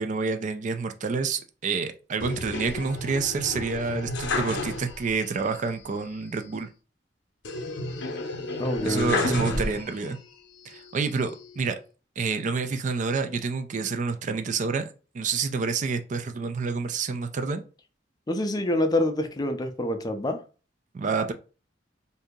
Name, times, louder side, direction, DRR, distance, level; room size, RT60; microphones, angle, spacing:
voice 1, 0.0-6.7 8.8-10.2 10.7-11.8 12.2-17.6 20.9-21.3, right 4 dB, 40° right, 0.4 m, -28 dB
sound 1, 2.2-5.2 5.5-5.6 7.4-10.2 10.7-11.5, left 2 dB, 80° left, 0.7 m, -31 dB
voice 2, 8.6-9.6 18.3-20.4, left 1 dB, 20° left, 0.5 m, -27 dB
2.8 x 2.6 x 3.6 m
head